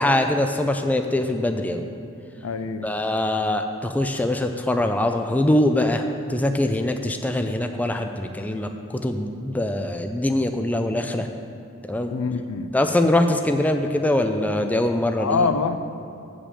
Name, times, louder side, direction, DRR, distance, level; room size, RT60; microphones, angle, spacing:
voice 1, 0.0-1.8 2.8-11.3 11.9-12.1 12.7-15.5, left 1 dB, 5° left, 6 dB, 0.3 m, -23 dB
voice 2, 2.4-2.9 12.1-12.7 15.2-15.9, left 4 dB, 80° left, 10 dB, 0.5 m, -25 dB
8.2 x 5.0 x 7.4 m, 2.6 s
head